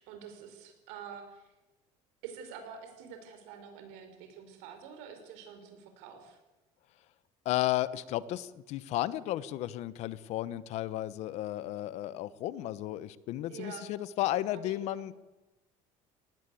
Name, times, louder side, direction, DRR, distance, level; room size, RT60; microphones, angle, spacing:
voice 1, 0.0-1.5 2.2-6.4 13.5-13.9 14.5-15.1, right 7 dB, 90° right, 6 dB, 5.4 m, -47 dB
voice 2, 7.4-15.1, left 14 dB, 60° left, 17 dB, 1.0 m, -33 dB
19.0 x 18.5 x 8.6 m, 1.1 s
cardioid pair, 145°, 13 cm